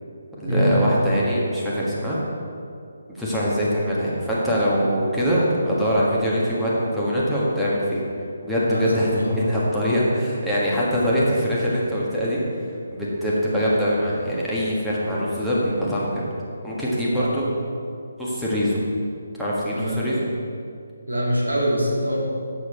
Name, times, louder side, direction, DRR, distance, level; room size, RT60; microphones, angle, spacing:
voice 1, 0.3-2.2 3.2-8.0 8.4-12.4 12.9-16.2 16.6-17.4 18.2-18.8 19.3-20.3, equal, ahead, -10 dB, 1.5 m, -23 dB
voice 2, 8.7-9.7 17.1-17.3 19.8-20.0 21.1-22.3, equal, 80° right, -5 dB, 2.3 m, -24 dB
8.0 x 7.2 x 4.4 m, 2.4 s
figure-of-eight pair, 145°, 0 cm